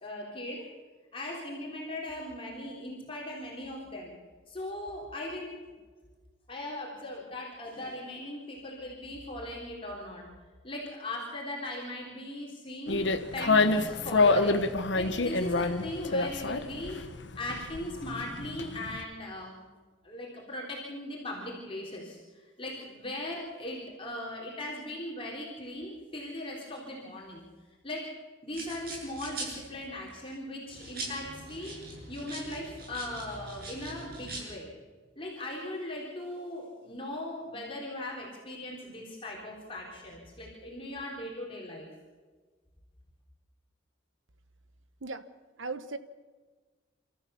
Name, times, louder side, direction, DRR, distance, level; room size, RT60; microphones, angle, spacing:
voice 1, 0.0-0.7 1.1-4.2 4.5-5.6 6.5-10.4 10.6-14.6 15.0-17.0 17.4-19.6 20.0-22.2 22.6-27.4 27.8-28.1 28.4-31.8 32.1-34.7 35.2-41.9, left 1 dB, 30° left, -3 dB, 3.8 m, -39 dB
sound 1, 12.9-19.0, left 3 dB, 65° left, 1.2 m, -27 dB
sound 2, 28.5-30.1 30.7-34.4, right 2 dB, 55° right, 7.4 m, -42 dB
voice 2, 45.6-46.0, right 3 dB, 85° right, 12 dB, 1.1 m, -36 dB
28.0 x 14.0 x 7.1 m, 1.4 s
head